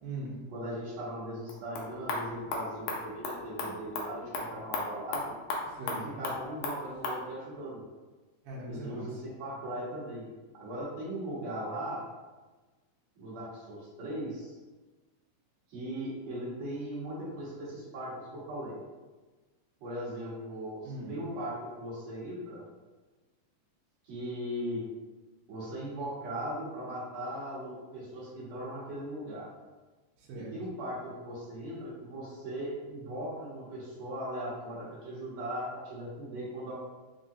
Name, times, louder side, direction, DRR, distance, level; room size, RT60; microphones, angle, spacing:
voice 1, 0.0-0.4 5.7-6.2 8.4-9.1 20.8-21.1 30.2-30.5, right 2 dB, 80° right, -5 dB, 2.2 m, -40 dB
voice 2, 0.5-5.3 6.2-7.8 8.7-10.3 10.6-12.0 13.2-14.6 15.7-18.8 19.8-22.6 24.0-24.8 25.5-29.5 30.5-36.7, equal, 60° right, -7 dB, 2.0 m, -38 dB
sound 1, 1.4-7.2, left 3 dB, 80° left, 2.0 m, -37 dB
5.4 x 2.0 x 2.6 m, 1.3 s
omnidirectional pair, 3.8 m